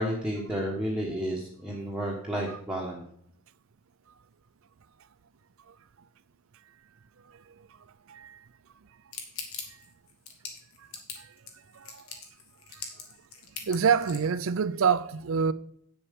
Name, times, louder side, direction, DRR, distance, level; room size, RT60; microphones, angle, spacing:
voice 1, 0.0-3.0, equal, 5° right, 1.2 m, -31 dB
voice 2, 8.1-8.5 10.8-10.9 11.2-11.3 11.7-12.1 12.7-12.8 13.6-15.5, right 6 dB, 65° right, 0.5 m, -27 dB
sound 1, 9.1-14.3, left 5 dB, 75° left, 1.9 m, -41 dB
8.6 x 7.1 x 5.2 m
head